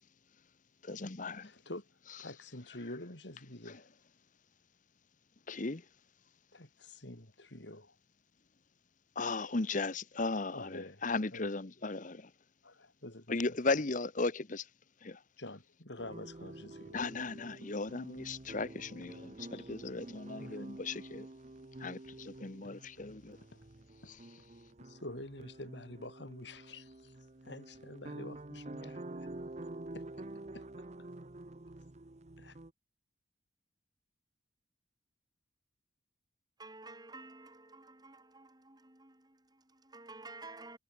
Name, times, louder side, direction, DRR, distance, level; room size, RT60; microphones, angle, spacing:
voice 1, 0.8-1.5 3.7-3.8 5.5-5.8 9.1-12.3 13.3-14.7 15.0-15.2 16.9-21.3 21.8-23.4 24.1-24.2, left 3 dB, 40° left, 1.0 m, -36 dB
voice 2, 1.4-1.9 2.2-3.9 6.5-8.0 10.5-11.0 11.3-11.5 12.6-13.4 15.4-17.1 19.5-19.7 20.4-20.6 23.5-23.6 24.0-24.1 24.8-27.1 27.4-29.3 29.9-30.0 30.5-30.9 32.4-32.6, left 1 dB, 65° left, 3.9 m, -47 dB
sound 1, 16.0-32.7, right 2 dB, 35° right, 0.9 m, -48 dB
voice 3, 36.6-40.8, right 3 dB, 20° right, 4.3 m, -52 dB
head